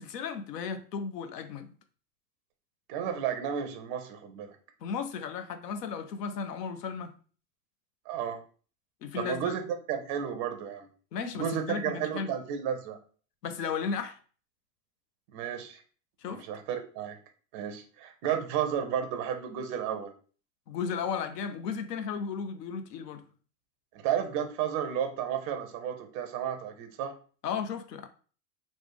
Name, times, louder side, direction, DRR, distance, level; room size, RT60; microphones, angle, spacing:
voice 1, 0.0-1.7 4.8-7.1 9.0-9.5 11.1-12.3 13.4-14.2 16.2-16.4 20.7-23.2 27.4-28.1, left 6 dB, 80° left, 0.6 m, -35 dB
voice 2, 2.9-4.5 8.1-8.4 9.1-9.6 9.9-10.9 11.3-13.0 15.3-15.8 16.3-17.2 17.5-20.1 23.9-27.1, right 9 dB, 30° right, 0.4 m, -32 dB
3.3 x 2.0 x 3.2 m
hypercardioid pair, 115°, 48 cm